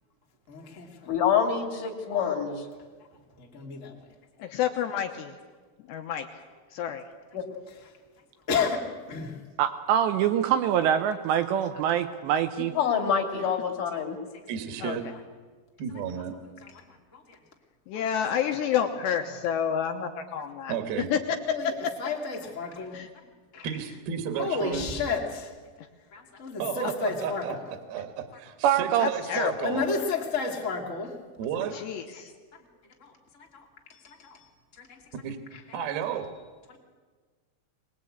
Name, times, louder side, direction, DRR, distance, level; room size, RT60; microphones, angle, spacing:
voice 1, 0.5-1.1 3.4-4.1 8.5-9.4 13.9-14.0 17.3-17.4 17.9-18.0 21.4-23.0 23.5-23.7 24.4-25.5 26.1-27.7 29.6-31.2 33.0-33.6 33.9-35.0 36.7-36.8, left 5 dB, 30° left, 0 dB, 1.4 m, -32 dB
voice 2, 1.1-2.6 7.3-7.4 12.7-14.2, left 7 dB, 45° left, 4 dB, 3.4 m, -26 dB
voice 3, 4.4-5.3 5.9-6.4 6.7-7.0 14.8-15.0 17.9-20.7 21.1-21.2 22.9-23.1 26.8-26.9 29.0-29.7 31.7-32.3, left 8 dB, 75° left, 4 dB, 2.8 m, -29 dB
voice 4, 9.6-12.7 28.6-29.1, right 9 dB, 80° right, 9 dB, 2.6 m, -24 dB
voice 5, 14.5-15.0 15.8-16.3 20.7-21.1 23.6-24.9 26.6-29.9 31.4-31.8 35.2-35.4 35.7-36.4, right 8 dB, 60° right, 7 dB, 2.9 m, -32 dB
23.0 x 20.5 x 8.7 m, 1.5 s
omnidirectional pair, 5.8 m